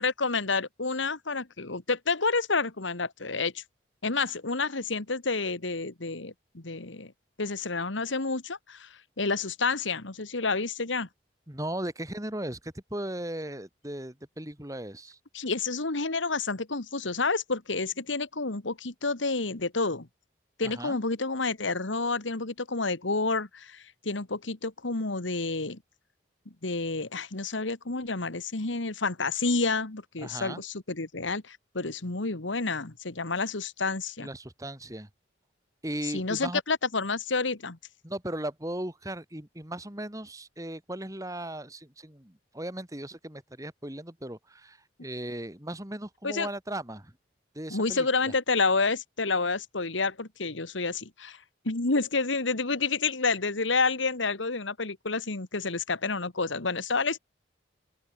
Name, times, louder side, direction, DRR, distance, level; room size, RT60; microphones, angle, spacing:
voice 1, 0.0-3.6 4.0-7.1 7.4-8.9 9.2-11.1 15.3-20.1 20.6-25.8 26.6-34.3 36.1-37.8 46.2-46.5 47.7-51.4 51.7-57.2, left 3 dB, 85° left, 1.9 m, -29 dB
voice 2, 11.5-15.2 20.6-21.0 30.2-30.6 34.2-35.1 35.8-36.6 38.0-47.1 47.5-48.3, right 1 dB, 20° right, 2.6 m, -37 dB
open air
head